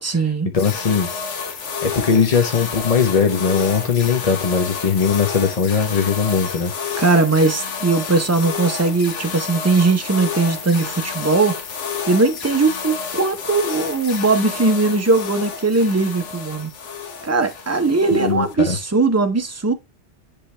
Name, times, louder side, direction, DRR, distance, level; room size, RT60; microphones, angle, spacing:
voice 1, 0.0-0.5 7.0-11.6 12.1-16.7 17.2-19.7, right 3 dB, 15° right, 0.6 m, -19 dB
voice 2, 0.5-1.1 1.8-7.0 18.1-18.8, left 6 dB, 35° left, 0.7 m, -19 dB
sound 1, 0.6-18.5, left 5 dB, 75° left, 1.3 m, -30 dB
9.9 x 3.4 x 3.2 m
omnidirectional pair, 1.3 m